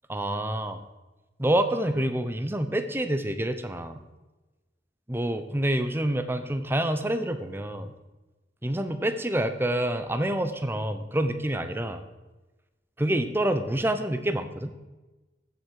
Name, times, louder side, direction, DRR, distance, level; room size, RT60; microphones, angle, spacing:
voice 1, 0.1-0.8 1.4-4.0 5.1-7.9 8.6-12.0 13.0-14.7, right 1 dB, 15° right, 9 dB, 0.8 m, -27 dB
14.5 x 7.8 x 4.7 m, 1.1 s
head